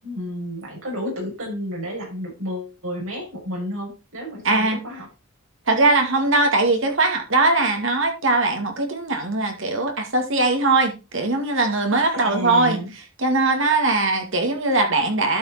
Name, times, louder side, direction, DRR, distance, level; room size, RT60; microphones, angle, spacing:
voice 1, 0.0-5.1 12.1-12.9, equal, 80° right, 6.6 m, -31 dB
voice 2, 4.4-4.8 5.7-12.8 13.2-15.4, right 2 dB, 65° right, 2.4 m, -20 dB
12.0 x 5.4 x 4.3 m
head